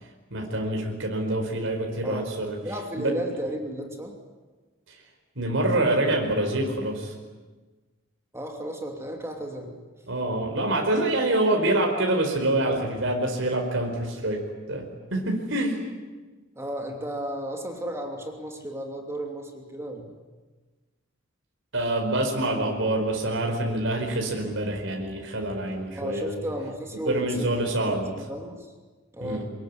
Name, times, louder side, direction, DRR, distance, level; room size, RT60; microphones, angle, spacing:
voice 1, 0.3-2.6 3.0-3.1 5.3-7.1 10.1-14.4 14.7-14.8 15.1-15.8 21.7-26.4 27.0-28.1 29.2-29.4, right 1 dB, 65° right, 1 dB, 5.0 m, -26 dB
voice 2, 2.0-2.3 2.6-4.2 8.3-9.8 16.6-20.1 25.9-27.6 27.8-28.7 29.1-29.5, right 1 dB, 15° right, 2 dB, 2.9 m, -34 dB
25.0 x 21.5 x 9.8 m, 1.3 s
head